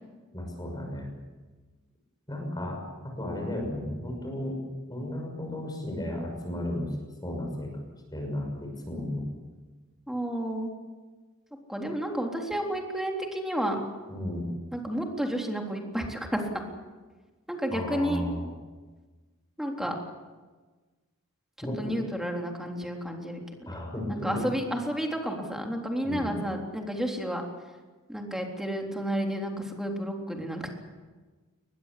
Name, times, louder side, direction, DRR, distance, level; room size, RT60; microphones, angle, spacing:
voice 1, 0.3-1.1 2.3-2.8 3.2-4.6 4.9-6.9 7.2-7.7 8.1-9.3 14.1-14.5 17.7-18.4 21.6-21.9 23.6-24.4 26.0-26.3, left 1 dB, 20° left, 1 dB, 6.3 m, -34 dB
voice 2, 10.1-10.7 11.7-13.8 14.7-16.4 17.5-18.2 19.6-20.0 21.8-23.7 24.1-27.4 28.1-30.7, equal, ahead, 1 dB, 3.6 m, -31 dB
22.5 x 21.0 x 8.5 m, 1.3 s
head